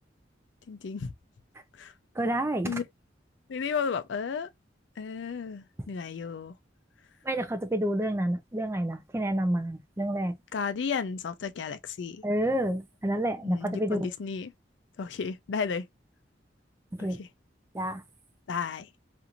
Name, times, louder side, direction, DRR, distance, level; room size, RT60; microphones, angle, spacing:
voice 1, 0.7-1.1 1.8-1.9 2.6-2.8 3.5-4.5 5.0-6.6 10.5-12.2 13.4-14.5 15.0-15.8 17.0-17.3 18.5-18.9, left 5 dB, 70° left, 0.4 m, -33 dB
voice 2, 2.2-2.8 7.2-10.4 12.2-14.0 16.9-17.2 17.7-18.0, right 1 dB, 15° right, 0.5 m, -29 dB
2.9 x 2.5 x 2.5 m
head